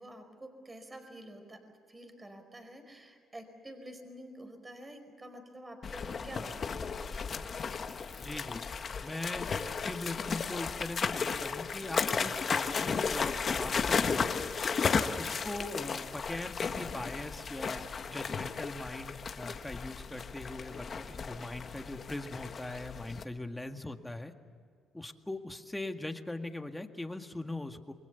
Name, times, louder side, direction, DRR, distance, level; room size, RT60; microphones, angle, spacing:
voice 1, 0.0-1.6 1.9-7.0, right 1 dB, 20° right, 6 dB, 4.9 m, -48 dB
sound 1, 5.8-23.2, left 5 dB, 45° left, 1.5 m, -34 dB
voice 2, 8.2-8.7 9.0-14.3 15.2-24.3 24.9-27.9, left 2 dB, 10° left, 6 dB, 1.9 m, -41 dB
28.5 x 22.5 x 7.1 m, 2.2 s
cardioid pair, 90°, 0 cm